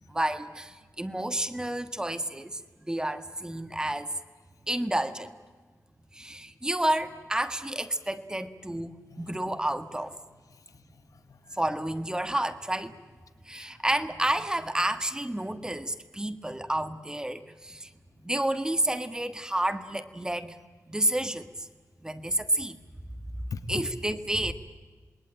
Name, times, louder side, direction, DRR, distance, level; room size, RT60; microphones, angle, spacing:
voice 1, 0.1-4.1 4.7-5.3 6.1-10.2 11.6-13.0 13.4-17.9 18.2-20.6 20.9-21.7 22.0-22.8 23.7-24.5, right 1 dB, 10° right, 9 dB, 1.4 m, -30 dB
voice 2, 10.5-11.6 13.5-13.8 23.5-23.8, left 5 dB, 70° left, 11 dB, 1.4 m, -42 dB
27.5 x 20.5 x 8.9 m, 1.4 s
wide cardioid pair, 125°, 6 cm